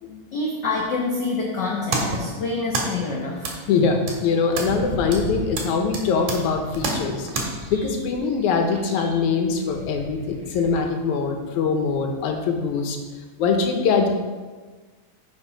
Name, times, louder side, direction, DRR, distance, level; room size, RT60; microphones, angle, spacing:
voice 1, 0.3-3.6, left 3 dB, 65° left, -1 dB, 1.1 m, -26 dB
sound 1, 1.6-7.5, right 3 dB, 85° right, 3.0 m, -31 dB
voice 2, 3.7-13.0 13.4-14.1, left 5 dB, 80° left, 4 dB, 2.4 m, -23 dB
sound 2, 4.5-10.8, right 1 dB, 70° right, 2.7 m, -37 dB
10.0 x 5.6 x 5.0 m, 1.4 s
omnidirectional pair, 3.4 m